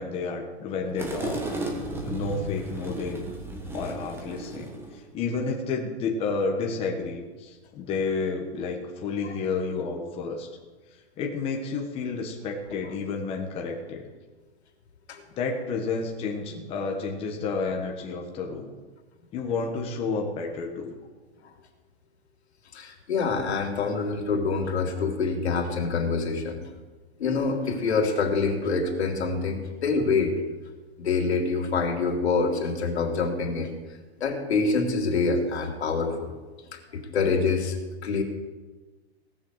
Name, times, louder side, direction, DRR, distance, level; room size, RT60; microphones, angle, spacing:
voice 1, 0.0-1.4 2.0-3.3 3.7-10.5 11.2-14.1 15.4-18.8 19.3-20.9, left 4 dB, 15° left, 1 dB, 1.4 m, -31 dB
sound 1, 1.0-5.0, right 1 dB, 5° right, 1.4 m, -34 dB
voice 2, 22.7-26.6 27.2-30.3 31.0-33.7 34.2-36.3 36.7-37.8 38.0-38.2, left 4 dB, 80° left, 2 dB, 3.3 m, -26 dB
18.0 x 6.9 x 8.0 m, 1.3 s
hypercardioid pair, 165°, 32 cm